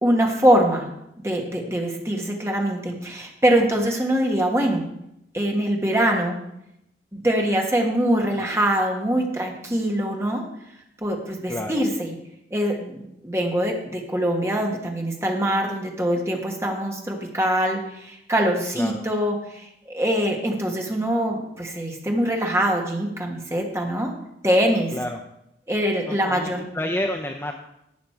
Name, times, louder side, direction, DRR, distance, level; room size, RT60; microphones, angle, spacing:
voice 1, 0.0-0.9 1.2-4.8 5.3-6.4 7.1-10.4 11.0-12.1 12.5-24.1 24.4-24.9 25.7-26.7, right 1 dB, 15° right, 1 dB, 1.5 m, -23 dB
voice 2, 11.5-11.8 18.7-19.0 24.9-25.2 26.1-27.5, left 1 dB, 15° left, 3 dB, 0.5 m, -30 dB
12.0 x 8.3 x 4.5 m, 0.82 s
head